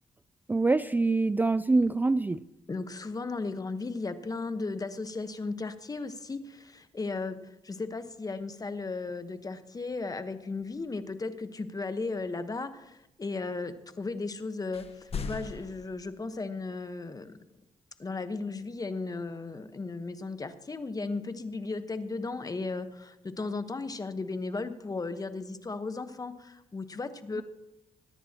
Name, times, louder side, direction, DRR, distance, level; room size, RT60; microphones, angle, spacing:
voice 1, 0.5-2.4, right 3 dB, 15° right, 15 dB, 0.3 m, -25 dB
voice 2, 2.7-17.4 18.0-27.4, left 3 dB, 30° left, 10 dB, 1.1 m, -35 dB
sound 1, 14.7-15.9, left 5 dB, 55° left, 1.1 m, -37 dB
22.0 x 10.0 x 2.9 m, 0.92 s
cardioid pair, 70°, 13 cm